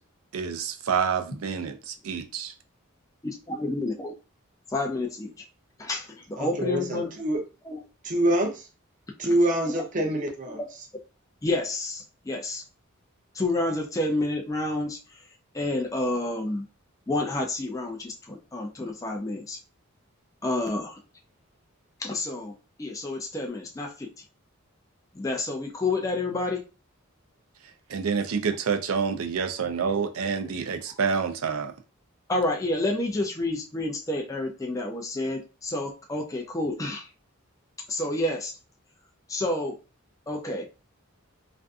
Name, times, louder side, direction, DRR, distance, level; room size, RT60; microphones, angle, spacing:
voice 1, 0.3-2.5 27.9-31.7, right 6 dB, 80° right, 0.4 m, -28 dB
voice 2, 3.2-4.1 4.7-5.3 5.8-7.1 7.7-7.8 9.2-9.3 10.5-10.7 11.4-12.6 13.3-15.0 15.5-16.7 17.1-19.6 20.4-21.0 22.0-22.5 22.8-24.1 25.1-26.6 30.9-31.0 32.3-37.1 37.9-38.5 39.3-39.8 40.3-40.7, left 2 dB, 15° left, 0.3 m, -29 dB
voice 3, 6.3-7.4 8.0-8.7 9.2-10.6, right 1 dB, 40° right, 0.6 m, -25 dB
2.5 x 2.5 x 2.3 m
head